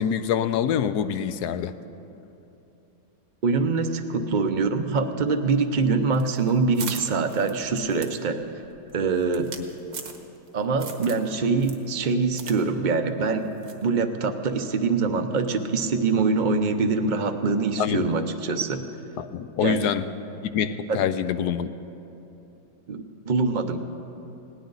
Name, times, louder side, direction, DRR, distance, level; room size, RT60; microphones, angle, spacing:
voice 1, 0.0-1.7 17.8-18.1 19.2-20.0 20.5-21.7, left 8 dB, 75° left, 12 dB, 1.1 m, -25 dB
voice 2, 3.4-8.4 8.9-9.5 10.5-13.5 13.8-18.9 19.6-19.9 20.9-21.0 22.9-23.8, right 4 dB, 45° right, 8 dB, 0.6 m, -24 dB
sound 1, 6.1-10.5 10.8-11.3 11.6-12.6 12.9-13.0 13.6-13.9, right 5 dB, 65° right, 1.6 m, -39 dB
19.5 x 18.0 x 3.9 m, 2.8 s
omnidirectional pair, 1.8 m